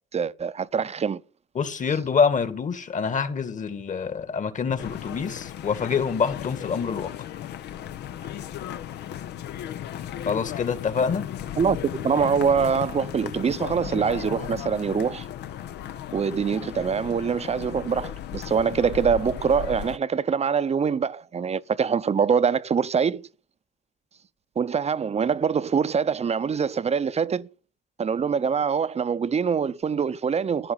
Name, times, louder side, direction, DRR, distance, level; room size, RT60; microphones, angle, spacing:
voice 1, 0.1-1.2 11.6-15.3 16.1-23.3 24.6-27.5 28.0-30.7, right 6 dB, 35° right, 0.8 m, -24 dB
voice 2, 1.6-7.1 10.3-11.3, left 6 dB, 45° left, 2.2 m, -26 dB
sound 1, 4.8-20.0, left 10 dB, 70° left, 0.9 m, -35 dB
14.5 x 11.0 x 7.4 m
supercardioid pair, 65°, 18 cm